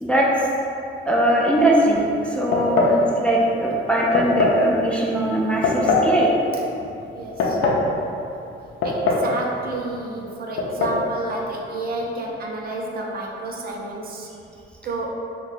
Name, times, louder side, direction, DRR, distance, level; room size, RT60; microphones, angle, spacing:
voice 1, 1.1-2.1 2.3-6.3, right 1 dB, 5° left, -4 dB, 0.3 m, -20 dB
sound 1, 2.5-3.0 4.1-4.6 5.6-6.1 7.1-7.9 8.8-9.3 9.6-9.7 10.6-11.0, left 3 dB, 85° left, 0.5 m, -20 dB
voice 2, 2.8-3.1 6.5-7.6 8.8-14.3 14.8-15.1, right 2 dB, 50° right, -1 dB, 0.5 m, -31 dB
2.9 x 2.3 x 4.1 m, 2.7 s
cardioid pair, 110°, 20 cm